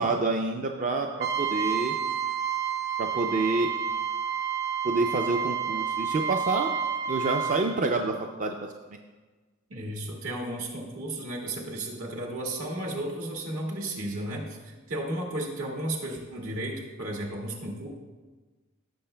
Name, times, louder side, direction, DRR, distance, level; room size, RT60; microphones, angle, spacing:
voice 1, 0.0-1.9 3.0-3.7 4.8-6.7 7.1-8.7, right 3 dB, 35° right, 4 dB, 0.4 m, -28 dB
Trumpet, 1.2-7.6, right 7 dB, 50° right, 0.9 m, -29 dB
voice 2, 9.7-17.9, right 1 dB, 75° right, -1 dB, 1.7 m, -34 dB
15.5 x 6.7 x 2.2 m, 1.3 s
head